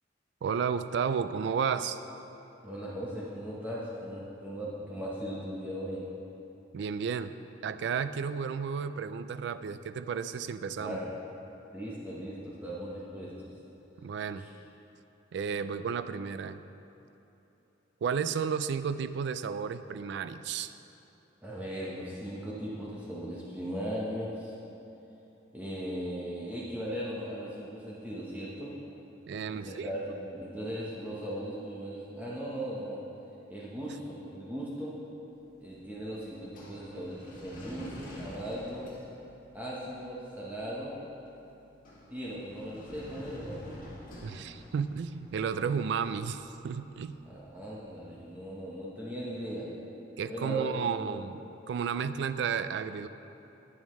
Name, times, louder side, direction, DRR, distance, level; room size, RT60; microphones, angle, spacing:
voice 1, 0.4-2.0 6.7-7.3 7.6-11.0 14.0-14.4 15.3-16.6 18.0-20.7 29.3-29.9 44.2-47.2 50.2-53.1, right 6 dB, 65° right, 12 dB, 0.3 m, -32 dB
voice 2, 2.6-6.0 10.8-11.1 11.7-13.5 14.0-14.1 14.4-14.5 21.4-24.5 25.5-28.7 29.5-33.0 33.5-34.9 35.6-38.9 39.5-41.0 42.1-43.7 47.2-49.7 50.3-51.2, equal, 10° right, -7 dB, 1.0 m, -38 dB
sound 1, 35.4-48.5, equal, 45° left, 1.8 m, -50 dB
10.5 x 8.7 x 3.2 m, 3.0 s
head